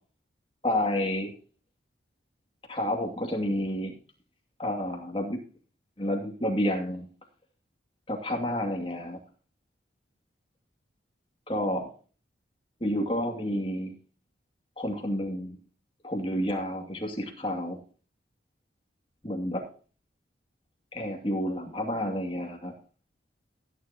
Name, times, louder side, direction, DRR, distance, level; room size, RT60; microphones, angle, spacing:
voice 1, 0.6-1.3 2.7-4.0 4.6-5.4 6.0-7.1 8.1-9.2 11.5-11.9 12.8-13.9 14.8-15.6 16.0-17.8 19.2-19.6 20.9-22.7, left 1 dB, 30° left, 2 dB, 2.4 m, -30 dB
16.0 x 9.8 x 2.9 m, 0.38 s
head